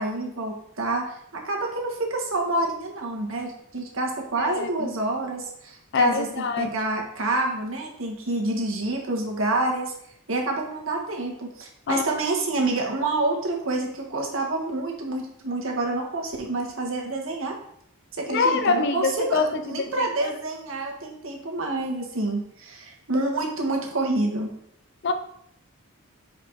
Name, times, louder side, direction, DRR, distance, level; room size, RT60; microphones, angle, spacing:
voice 1, 0.0-9.9 10.3-17.5 18.2-24.5, right 2 dB, 70° right, 0 dB, 1.4 m, -28 dB
voice 2, 4.4-4.9 5.9-6.7 11.9-12.0 18.3-20.3 25.0-25.1, left 4 dB, 55° left, 8 dB, 0.5 m, -25 dB
5.4 x 4.8 x 4.7 m, 0.73 s
head